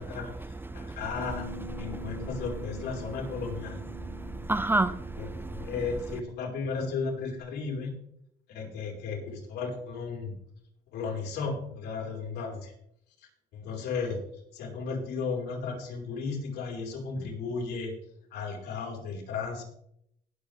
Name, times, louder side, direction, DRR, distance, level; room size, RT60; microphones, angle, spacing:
voice 1, 0.0-1.5 1.8-3.8 5.2-7.9 8.5-10.3 10.9-12.7 13.5-14.2 14.5-17.9 18.3-19.6, left 4 dB, 75° left, 0 dB, 4.6 m, -34 dB
Bass guitar, 1.2-7.4, left 3 dB, 25° left, 3.8 m, -47 dB
voice 2, 1.8-2.3 3.9-5.7, right 2 dB, 10° right, 14 dB, 0.5 m, -31 dB
20.0 x 7.9 x 3.6 m, 0.72 s
cardioid pair, 110°, 17 cm